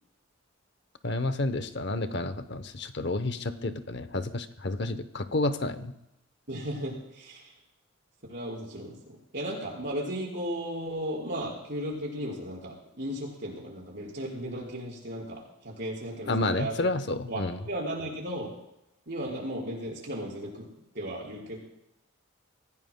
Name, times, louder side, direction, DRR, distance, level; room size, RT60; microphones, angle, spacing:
voice 1, 1.0-5.9 16.3-17.6, left 2 dB, 55° left, 10 dB, 0.8 m, -30 dB
voice 2, 6.5-7.5 8.3-16.9 17.3-18.5 19.1-20.7 20.9-21.6, equal, 50° right, -3 dB, 5.1 m, -35 dB
24.5 x 16.5 x 2.2 m, 0.86 s
head